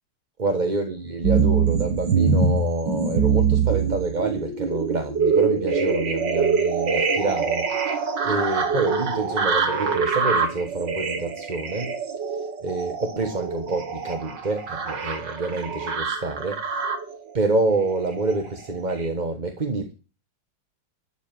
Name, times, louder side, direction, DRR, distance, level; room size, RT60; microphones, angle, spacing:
voice 1, 0.4-11.9 12.6-16.6 17.3-19.9, right 3 dB, 25° right, 1.4 m, -27 dB
sound 1, 1.2-17.1 17.8-18.5 18.9-19.1, right 5 dB, 75° right, 2.6 m, -24 dB
13.0 x 7.4 x 9.2 m
omnidirectional pair, 2.0 m